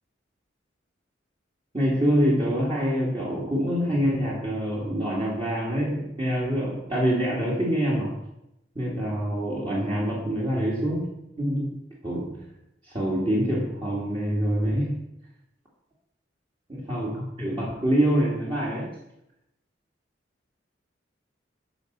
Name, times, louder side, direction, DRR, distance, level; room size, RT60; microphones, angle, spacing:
voice 1, 1.7-8.2 8.8-11.1 11.4-12.5 12.8-15.0 16.7-18.9, equal, 25° right, -7 dB, 2.2 m, -25 dB
10.5 x 5.3 x 6.7 m, 0.85 s
head